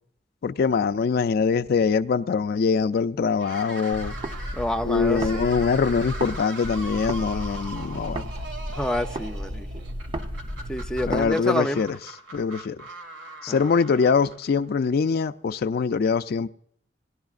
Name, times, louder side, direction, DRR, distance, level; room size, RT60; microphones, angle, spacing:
voice 1, 0.4-4.1 4.8-8.3 11.1-12.0 12.3-12.8 13.4-16.5, left 5 dB, 55° left, 0.4 m, -23 dB
sound 1, 3.3-14.6, right 2 dB, 75° right, 1.7 m, -40 dB
sound 2, 3.9-6.4 6.6-11.3, equal, 30° right, 0.7 m, -34 dB
voice 2, 4.6-5.5 8.7-9.7 10.7-11.8 13.5-13.6, left 1 dB, 5° left, 0.5 m, -28 dB
19.0 x 11.0 x 2.4 m
head